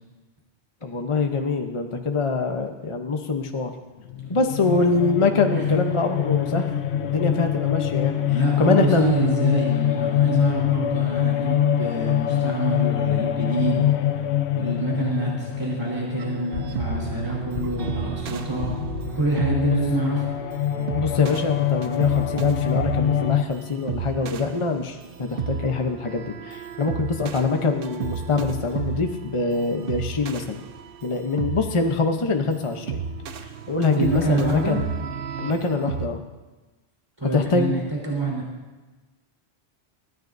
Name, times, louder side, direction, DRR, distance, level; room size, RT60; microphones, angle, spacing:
voice 1, 0.8-3.7 4.3-6.7 7.0-9.1 21.0-30.6 31.0-33.0 33.4-34.9 35.4-36.2 37.2-37.8, left 3 dB, 30° left, 4 dB, 0.8 m, -24 dB
sound 1, 4.0-23.4, left 10 dB, 80° left, 0.9 m, -25 dB
voice 2, 8.2-13.8 14.6-18.7 19.1-20.3 33.9-34.8 37.2-38.4, right 2 dB, 20° right, -4 dB, 3.9 m, -26 dB
sound 2, 16.2-36.1, right 6 dB, 60° right, 0.8 m, -33 dB
22.5 x 15.0 x 2.7 m, 1.2 s
omnidirectional pair, 1.1 m